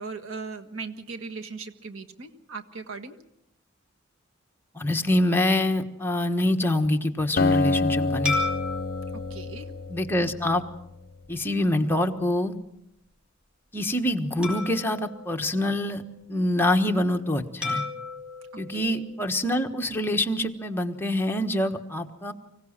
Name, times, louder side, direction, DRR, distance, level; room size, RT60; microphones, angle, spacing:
voice 1, 0.0-3.1 9.3-9.7 18.8-19.0, right 4 dB, 85° right, 7 dB, 1.6 m, -38 dB
voice 2, 4.8-8.4 9.9-10.6 11.3-12.6 13.7-16.0 16.3-17.8 18.6-22.3, left 1 dB, 10° left, 4 dB, 1.3 m, -25 dB
Acoustic guitar, 7.4-10.9, left 3 dB, 50° left, 0.9 m, -27 dB
sound 1, 8.2-10.9 11.5-11.7 14.4-16.2 17.6-19.9, left 3 dB, 5° right, 4.6 m, -35 dB
25.0 x 16.5 x 7.3 m, 0.80 s
head